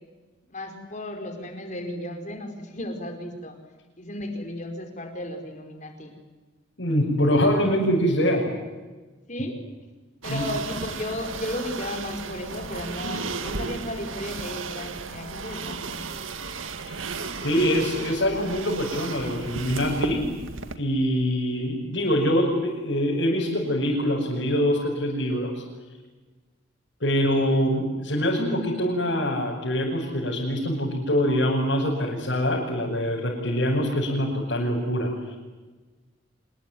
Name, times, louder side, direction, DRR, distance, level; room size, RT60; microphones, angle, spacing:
voice 1, 0.5-3.6 4.0-6.2 9.3-9.6 10.2-16.0, left 1 dB, 40° left, 4 dB, 5.0 m, -34 dB
voice 2, 6.8-8.5 10.3-10.4 16.9-17.0 17.4-20.2 20.8-25.6 27.0-35.4, equal, 65° left, -4 dB, 6.3 m, -24 dB
sound 1, 10.2-20.8, right 4 dB, 85° right, 2.1 m, -34 dB
26.0 x 22.0 x 9.4 m, 1.3 s
head